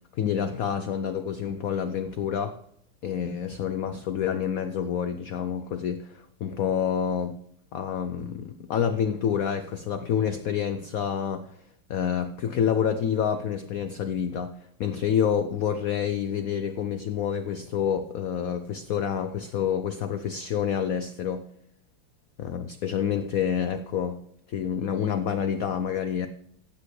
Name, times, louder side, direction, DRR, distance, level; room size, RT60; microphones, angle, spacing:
voice 1, 0.1-2.6 3.0-7.4 7.7-11.5 11.9-14.5 14.8-21.5 22.4-24.2 24.5-26.3, left 8 dB, 75° left, 0.8 m, -28 dB
15.5 x 8.2 x 3.2 m
omnidirectional pair, 2.2 m